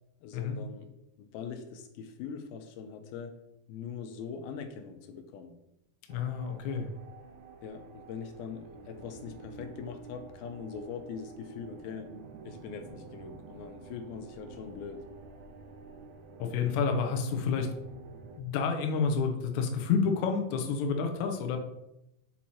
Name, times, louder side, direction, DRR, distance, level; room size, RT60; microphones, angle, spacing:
voice 1, 0.2-3.4 3.7-5.6 7.6-12.1 12.4-15.1, left 6 dB, 90° left, 7 dB, 2.5 m, -42 dB
voice 2, 6.1-6.9 16.4-17.7 18.4-21.6, left 5 dB, 70° left, 4 dB, 2.0 m, -29 dB
sound 1, 6.1-18.4, right 4 dB, 80° right, 1.7 m, -49 dB
7.2 x 4.6 x 4.3 m, 0.84 s
omnidirectional pair, 4.2 m